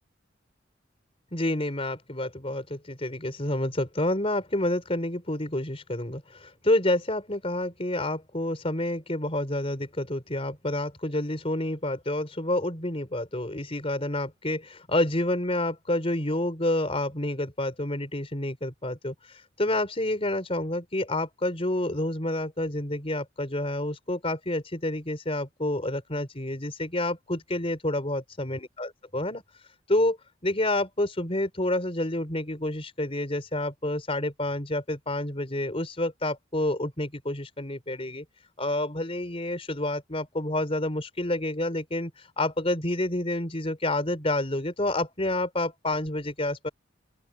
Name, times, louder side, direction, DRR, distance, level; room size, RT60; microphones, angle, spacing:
voice 1, 1.3-30.2 30.4-38.2 38.6-46.7, left 1 dB, 30° left, 4.3 m, -29 dB
open air
head